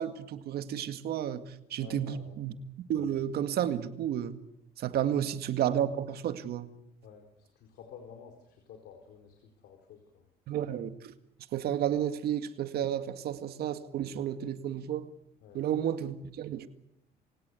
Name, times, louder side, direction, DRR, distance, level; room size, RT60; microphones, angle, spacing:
voice 1, 0.0-1.4 1.7-2.5 2.9-4.4 4.8-6.7 10.5-11.1 11.5-15.1 15.5-16.7, right 10 dB, 70° right, 10 dB, 2.0 m, -31 dB
voice 2, 1.8-2.4 7.0-10.3 15.4-15.6, left 6 dB, 75° left, 4 dB, 4.5 m, -51 dB
28.0 x 17.0 x 8.4 m, 0.78 s
cardioid pair, 110°, 17 cm